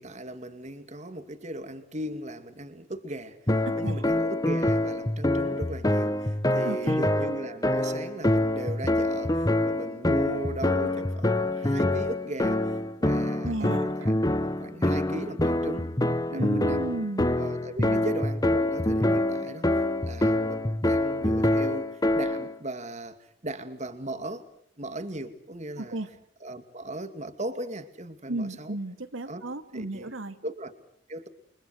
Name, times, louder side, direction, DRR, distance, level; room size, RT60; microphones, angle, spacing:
voice 1, 0.0-3.4 3.7-14.1 14.4-15.9 16.3-16.8 17.4-24.5 24.8-26.0 26.4-28.8 29.3-29.4 29.7-30.1 30.4-30.7 31.1-31.3, right 1 dB, 35° right, 9 dB, 2.4 m, -38 dB
sound 1, 3.5-22.5, left 1 dB, 20° left, 1.2 m, -26 dB
voice 2, 3.7-4.0 6.6-7.0 13.4-13.9 16.3-17.3 17.8-18.1 25.8-26.1 28.3-30.4, right 2 dB, 85° right, 8 dB, 2.5 m, -34 dB
30.0 x 24.0 x 6.5 m, 0.67 s
head